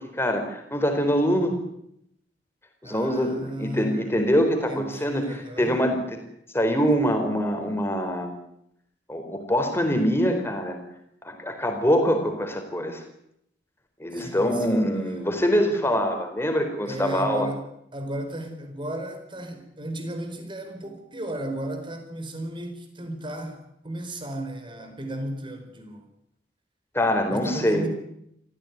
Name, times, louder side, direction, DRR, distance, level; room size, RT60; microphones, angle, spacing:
voice 1, 0.1-1.6 2.8-5.2 5.6-6.2 6.5-8.4 9.1-10.8 11.2-13.0 14.0-17.5 26.9-27.9, equal, 15° left, 5 dB, 4.4 m, -24 dB
voice 2, 2.8-4.2 4.7-5.7 14.1-14.8 16.9-17.6 17.9-26.0 27.3-27.9, right 1 dB, 25° right, 7 dB, 4.5 m, -34 dB
24.5 x 15.5 x 9.5 m, 0.76 s
head